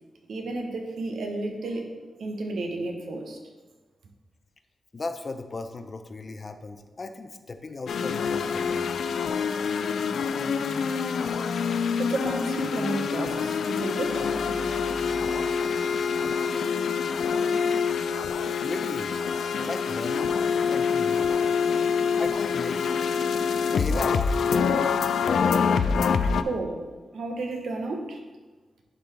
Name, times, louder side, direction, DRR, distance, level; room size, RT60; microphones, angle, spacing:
voice 1, 0.3-1.9 2.2-3.4 12.0-14.2 26.4-26.8 27.1-28.2, right 2 dB, 80° right, 3 dB, 1.0 m, -32 dB
voice 2, 4.9-8.9 18.5-19.2 19.5-20.4 20.6-21.3 22.2-23.1 23.8-24.6, left 3 dB, 40° left, 8 dB, 0.6 m, -36 dB
sound 1, 7.9-26.4, left 6 dB, 85° left, 0.3 m, -26 dB
Organ, 14.0-17.1, equal, 10° right, 1.2 m, -43 dB
11.0 x 3.8 x 3.4 m, 1.3 s
wide cardioid pair, 105°, 0 cm